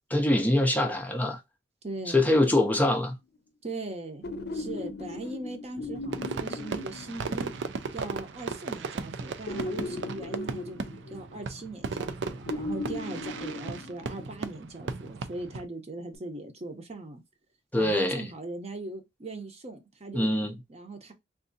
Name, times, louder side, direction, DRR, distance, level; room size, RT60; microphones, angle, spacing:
voice 1, 0.1-1.4 2.1-3.1 17.7-18.2 20.1-20.5, left 1 dB, 10° left, 0.5 m, -24 dB
voice 2, 1.8-2.3 3.6-4.2 4.5-7.5 7.9-10.8 11.1-17.2 17.8-20.3 20.7-21.1, right 2 dB, 35° right, 0.7 m, -39 dB
sound 1, 2.4-3.1 4.2-7.8 9.5-11.7 12.5-14.5 16.1-16.2, left 2 dB, 60° left, 0.5 m, -38 dB
Fireworks, 6.1-15.7, right 4 dB, 90° right, 0.5 m, -36 dB
3.6 x 2.6 x 2.6 m
head